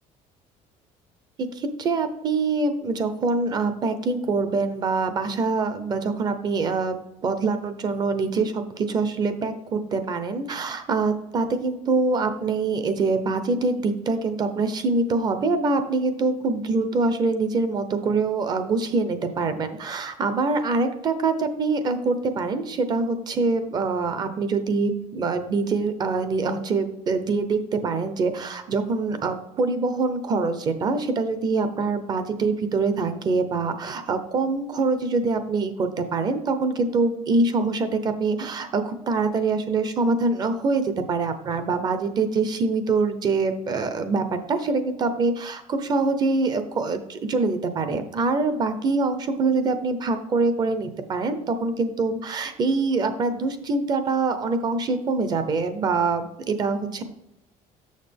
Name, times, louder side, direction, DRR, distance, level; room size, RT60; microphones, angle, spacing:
voice 1, 1.4-57.0, right 3 dB, 30° right, 9 dB, 0.7 m, -24 dB
7.0 x 6.5 x 3.5 m, 0.82 s
cardioid pair, 170°, 14 cm